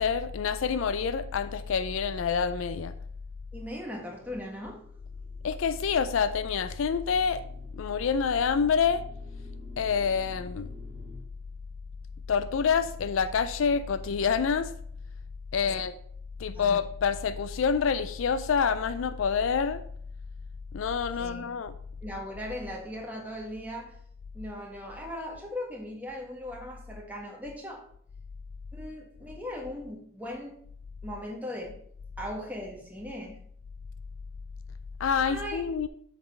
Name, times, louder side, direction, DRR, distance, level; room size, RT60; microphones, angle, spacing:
voice 1, 0.0-2.9 5.4-7.4 7.7-9.0 9.8-10.7 12.3-14.7 15.5-15.9 16.4-19.8 20.7-21.7 35.0-35.9, left 6 dB, 65° left, 12 dB, 0.4 m, -27 dB
voice 2, 3.5-4.8 15.6-15.8 16.5-16.7 21.2-21.5 22.0-23.9 24.3-27.8 28.7-30.5 31.0-31.7 32.2-33.4 35.2-35.6, left 1 dB, 5° right, -1 dB, 1.6 m, -38 dB
sound 1, 4.9-11.2, equal, 55° right, 2.1 m, -53 dB
7.7 x 4.1 x 5.4 m, 0.63 s
head